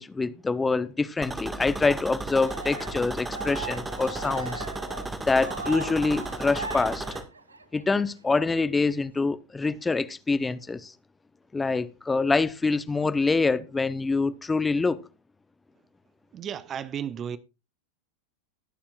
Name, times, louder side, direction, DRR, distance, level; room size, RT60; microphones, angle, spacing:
voice 1, 0.0-4.7 5.3-7.0 7.7-10.9 11.5-15.0, left 3 dB, 15° left, 0.8 m, -25 dB
sound 1, 1.2-7.2, right 2 dB, 10° right, 1.8 m, -34 dB
Cheering, 2.3-7.8, right 4 dB, 85° right, 0.7 m, -39 dB
voice 2, 16.3-17.4, right 8 dB, 30° right, 0.8 m, -33 dB
21.0 x 7.1 x 2.4 m
figure-of-eight pair, 90°, 0 cm